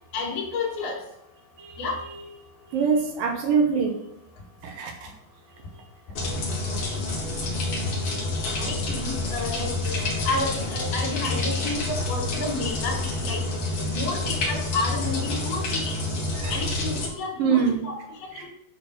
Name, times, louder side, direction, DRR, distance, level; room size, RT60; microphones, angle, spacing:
voice 1, 0.1-1.0 1.8-2.0 8.6-13.4 13.9-16.0 16.5-18.5, left 3 dB, 80° left, -1 dB, 3.7 m, -31 dB
voice 2, 2.7-4.0 4.6-5.1 16.4-16.6 17.4-17.8, right 6 dB, 70° right, 2 dB, 2.7 m, -24 dB
sound 1, 6.1-17.1, left 2 dB, 45° left, 2.0 m, -28 dB
10.5 x 3.9 x 6.2 m, 0.78 s
omnidirectional pair, 4.4 m